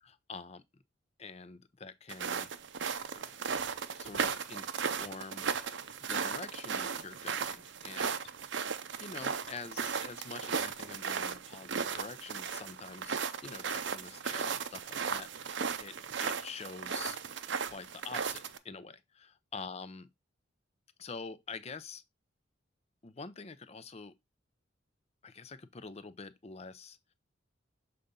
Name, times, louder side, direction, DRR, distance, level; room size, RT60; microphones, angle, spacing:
voice 1, 0.0-0.6 1.2-2.5 3.1-3.2 4.0-4.7 5.0-8.3 9.0-17.2 17.6-20.1 21.0-22.0 23.0-24.1 25.2-27.1, left 4 dB, 35° left, 0.6 m, -46 dB
sound 1, 2.1-18.6, right 6 dB, 65° right, 0.6 m, -36 dB
6.7 x 4.0 x 3.7 m
head